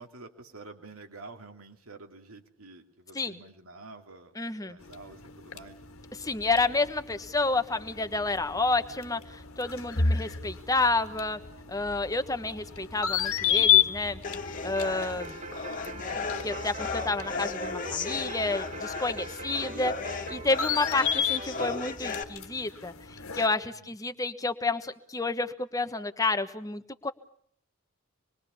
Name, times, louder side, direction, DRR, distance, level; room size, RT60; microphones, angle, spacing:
voice 1, 0.0-4.4 4.7-5.8 8.3-8.6 19.3-19.6 23.7-23.9, right 3 dB, 85° right, 5 dB, 2.9 m, -49 dB
voice 2, 4.4-4.8 6.2-11.4 11.7-14.2 14.6-15.4 16.2-27.1, left 3 dB, 15° left, 9 dB, 1.2 m, -30 dB
sound 1, 4.8-23.5, left 8 dB, 85° left, 1.6 m, -32 dB
sound 2, 14.2-22.2, left 4 dB, 40° left, 1.9 m, -36 dB
sound 3, 14.8-21.8, right 2 dB, 35° right, 2.7 m, -42 dB
26.5 x 22.0 x 7.0 m, 0.63 s
head